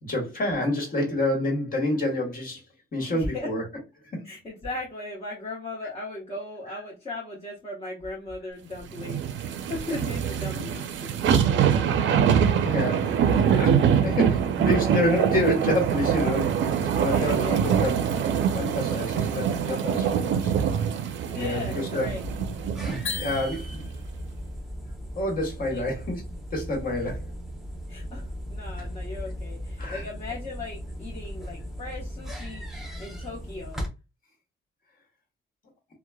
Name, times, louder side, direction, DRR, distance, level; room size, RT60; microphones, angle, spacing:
voice 1, 0.0-2.6 2.9-3.6 4.1-4.2 12.6-13.1 13.5-16.5 16.8-17.9 18.5-20.5 21.3-22.1 22.8-23.8 25.2-26.2 26.5-27.3 29.8-30.0, left 1 dB, 45° left, 1.4 m, -28 dB
voice 2, 3.1-3.5 4.2-11.1 13.0-13.2 13.5-13.6 14.0-14.2 17.0-17.6 21.3-22.3 25.7-25.8 26.9-27.1 27.9-33.8, left 2 dB, 30° left, 0.9 m, -37 dB
sound 1, 9.0-23.4 23.8-23.9, right 8 dB, 70° right, 0.4 m, -24 dB
sound 2, 22.0-33.9, equal, ahead, 0.8 m, -37 dB
sound 3, 23.0-24.2, left 6 dB, 80° left, 0.6 m, -35 dB
2.9 x 2.1 x 2.2 m
cardioid pair, 90°, 20 cm